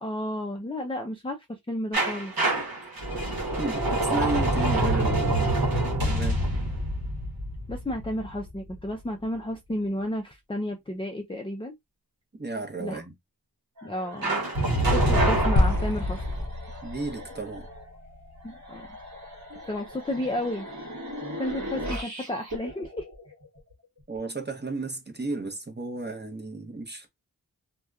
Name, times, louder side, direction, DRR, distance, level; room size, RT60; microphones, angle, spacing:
voice 1, 0.0-1.4 1.7-2.3 7.7-11.7 12.8-13.0 13.8-14.5 14.9-16.2 18.4-18.9 19.7-20.7 21.4-23.1, left 1 dB, 15° left, 0.4 m, -32 dB
sound 1, 1.9-8.7 14.2-16.5, right 1 dB, 65° right, 1.0 m, -26 dB
voice 2, 3.6-5.6 6.0-6.4 12.3-13.1 16.8-17.7 24.1-27.1, right 3 dB, 30° right, 0.8 m, -33 dB
sound 2, 13.8-24.0, equal, 50° right, 1.1 m, -40 dB
sound 3, 15.6-19.9, left 1 dB, 50° left, 0.7 m, -31 dB
2.8 x 2.2 x 2.3 m
wide cardioid pair, 45°, 38 cm